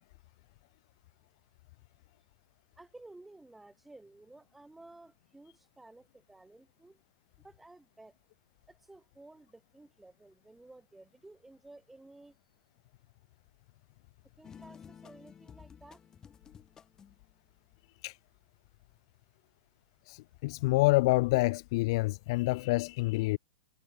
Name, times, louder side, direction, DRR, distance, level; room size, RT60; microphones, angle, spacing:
voice 1, 2.8-7.0 7.4-8.2 8.7-12.3 14.4-16.0, right 2 dB, 5° right, 1.6 m, -54 dB
sound 1, 14.4-17.2, left 7 dB, 10° left, 4.5 m, -53 dB
voice 2, 20.1-23.4, left 22 dB, 35° left, 0.5 m, -27 dB
supercardioid pair, 175°, 5 cm